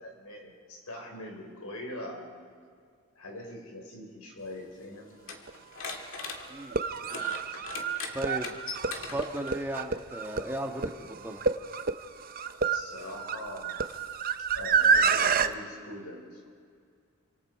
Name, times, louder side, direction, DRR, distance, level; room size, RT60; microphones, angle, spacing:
voice 1, 0.0-2.5 3.2-5.1 12.6-13.8 14.5-16.5, left 1 dB, 85° left, 1 dB, 5.2 m, -42 dB
sound 1, 4.4-9.8 10.9-11.0 11.8-15.1, left 4 dB, 60° left, 2.4 m, -42 dB
sound 2, 5.5-5.6 6.6-15.5, right 5 dB, 40° right, 0.7 m, -28 dB
voice 2, 8.1-8.6 9.1-11.4, right 1 dB, 10° right, 2 dB, 1.5 m, -36 dB
28.0 x 26.0 x 4.9 m, 2.1 s
head